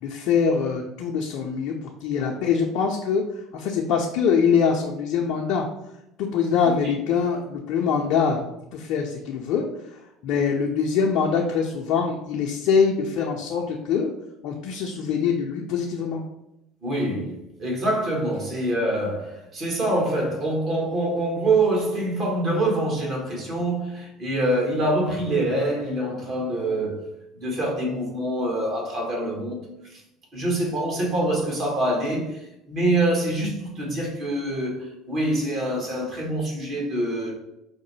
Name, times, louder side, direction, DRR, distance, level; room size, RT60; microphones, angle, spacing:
voice 1, 0.0-3.2 3.5-5.7 6.2-8.4 8.7-14.1 14.4-16.2, left 6 dB, 65° left, 0.4 m, -23 dB
voice 2, 6.6-7.0 16.8-27.1 27.3-29.7 29.9-30.0 30.3-37.4, right 1 dB, 50° right, 1.3 m, -25 dB
4.7 x 2.1 x 3.1 m
hypercardioid pair, 65°, 0 cm